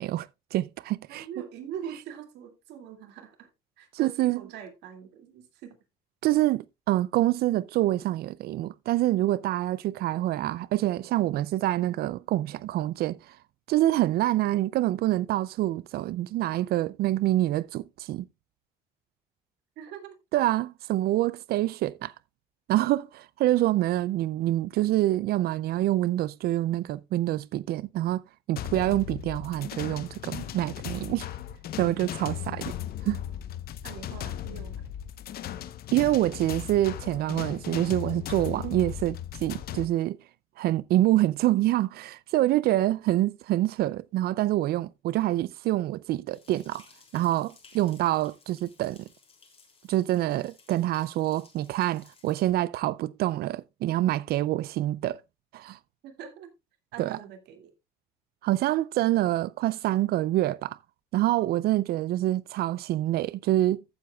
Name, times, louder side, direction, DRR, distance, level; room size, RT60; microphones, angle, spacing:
voice 1, 0.0-1.3 3.9-4.4 6.2-13.4 13.7-18.3 20.3-22.1 22.7-28.2 28.5-31.3 31.8-32.7 33.0-33.2 35.9-40.2 40.6-46.8 47.1-49.1 49.9-55.2 55.5-55.8 57.0-57.2 58.4-60.8 61.1-63.8, right 15 dB, 65° right, 0.4 m, -26 dB
voice 2, 1.1-3.5 3.8-5.8 19.8-20.2 33.8-34.8 56.0-56.5 56.9-57.7, right 8 dB, 80° right, 2.4 m, -42 dB
sound 1, 28.6-39.9, left 11 dB, 65° left, 0.8 m, -37 dB
sound 2, 46.3-52.5, left 4 dB, 35° left, 3.7 m, -58 dB
15.0 x 7.6 x 2.3 m
cardioid pair, 110°, 17 cm